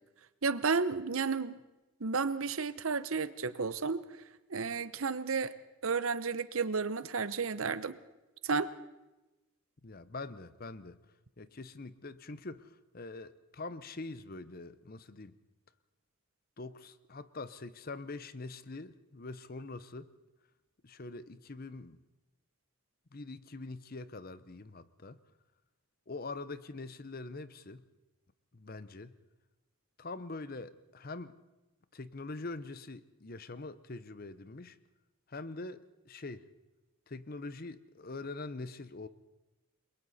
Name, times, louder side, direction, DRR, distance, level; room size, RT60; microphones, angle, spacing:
voice 1, 0.4-1.6 2.0-4.0 4.5-5.5 5.8-8.0 8.4-8.7, right 5 dB, 70° right, 14 dB, 0.8 m, -32 dB
voice 2, 9.8-11.0 11.4-15.4 16.6-20.1 20.8-22.0 23.1-25.2 26.1-27.8 28.5-29.1 30.0-31.3 31.9-34.8 35.3-36.5 37.1-39.1, left 3 dB, 45° left, 14 dB, 0.8 m, -44 dB
29.0 x 22.5 x 4.2 m, 1.0 s
head